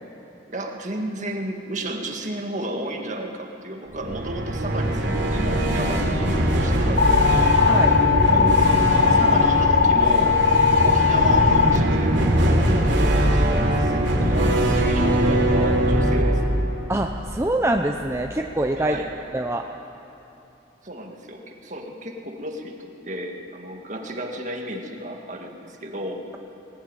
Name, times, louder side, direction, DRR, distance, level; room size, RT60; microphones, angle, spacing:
voice 1, 0.5-7.6 8.3-8.6 9.1-10.5 10.8-16.4 18.7-19.1 20.8-26.3, right 1 dB, 40° right, 2 dB, 1.9 m, -32 dB
sound 1, 3.9-17.9, right 1 dB, 80° right, 3.1 m, -21 dB
sound 2, 7.0-11.8, left 6 dB, 50° left, 0.6 m, -19 dB
voice 2, 16.9-19.0 19.3-19.7, right 1 dB, 15° right, 3 dB, 0.6 m, -24 dB
20.5 x 17.5 x 9.0 m, 2.9 s
head